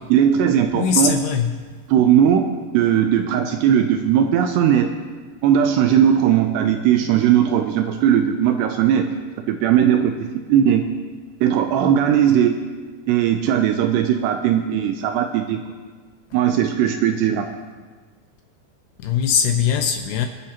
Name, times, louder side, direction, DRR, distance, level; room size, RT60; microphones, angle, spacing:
voice 1, 0.1-1.2 1.9-2.5 2.7-4.9 5.4-9.1 9.5-10.8 11.4-12.6 13.1-15.6 16.3-17.5, right 9 dB, 80° right, 6 dB, 2.5 m, -18 dB
voice 2, 0.7-1.5 19.0-20.3, left 7 dB, 80° left, 5 dB, 2.5 m, -20 dB
25.0 x 8.7 x 2.9 m, 1.5 s
omnidirectional pair, 5.3 m